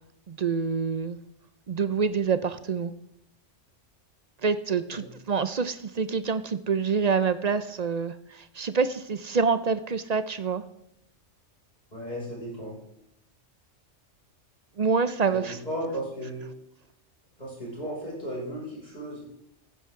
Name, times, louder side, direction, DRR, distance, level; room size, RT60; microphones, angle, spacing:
voice 1, 0.3-1.2 1.7-2.9 4.4-10.6 14.8-15.6, right 5 dB, 45° right, 13 dB, 0.5 m, -26 dB
voice 2, 11.9-12.8 15.3-16.4 17.4-19.2, equal, 35° left, -5 dB, 5.7 m, -35 dB
15.0 x 9.9 x 3.7 m, 0.80 s
omnidirectional pair, 1.3 m